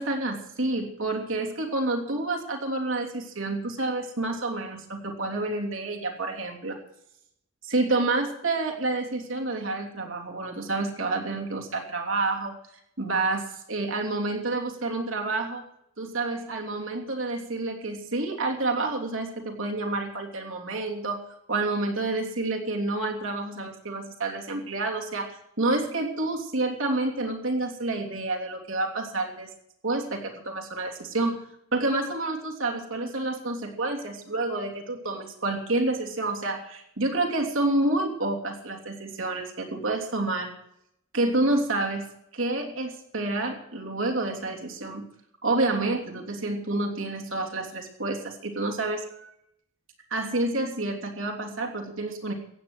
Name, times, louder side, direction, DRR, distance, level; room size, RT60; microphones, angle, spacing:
voice 1, 0.0-6.8 7.6-12.6 13.0-15.6 16.0-21.2 21.5-29.5 29.8-40.5 41.1-45.0 45.4-49.3 50.1-52.3, right 2 dB, 65° right, 1 dB, 3.2 m, -29 dB
15.5 x 9.2 x 7.8 m, 0.77 s
head